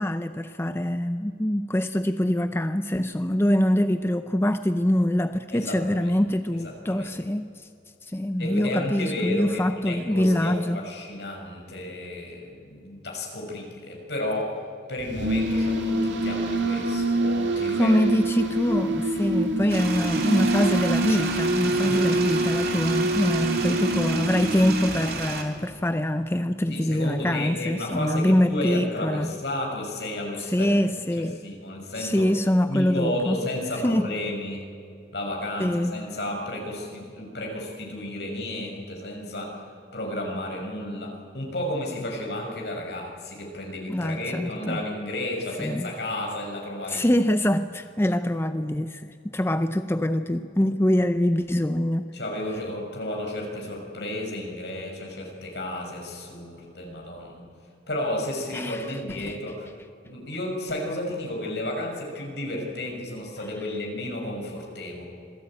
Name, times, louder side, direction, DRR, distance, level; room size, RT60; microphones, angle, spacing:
voice 1, 0.0-7.7 8.0-10.8 17.7-29.3 30.5-31.4 32.0-33.5 33.8-34.1 35.6-36.0 43.9-44.8 45.6-45.9 46.9-52.1 58.5-59.4, left 1 dB, 15° left, 9 dB, 0.5 m, -24 dB
voice 2, 5.5-6.1 6.5-7.1 8.4-14.6 14.9-18.1 19.6-19.8 21.8-22.2 26.7-30.7 31.0-32.2 32.7-34.7 35.1-39.7 39.9-47.2 52.1-57.4 57.9-59.7 60.0-65.0, left 1 dB, 70° left, 0 dB, 6.2 m, -32 dB
sound 1, 15.0-25.4, right 2 dB, 90° right, 2.4 m, -26 dB
sound 2, 19.7-25.4, right 4 dB, 55° right, 3.1 m, -33 dB
26.5 x 18.0 x 8.9 m, 2.5 s
head